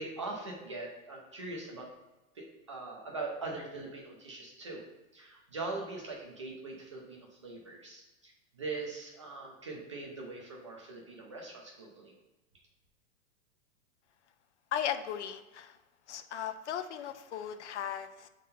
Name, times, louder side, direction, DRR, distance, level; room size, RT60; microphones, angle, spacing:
voice 1, 0.0-1.9 2.3-4.8 5.1-12.1, right 3 dB, 25° right, -1 dB, 0.4 m, -41 dB
voice 2, 14.7-15.8 16.1-18.3, left 9 dB, 55° left, 11 dB, 0.5 m, -37 dB
7.4 x 3.7 x 4.1 m, 1.0 s
supercardioid pair, 175°, 41 cm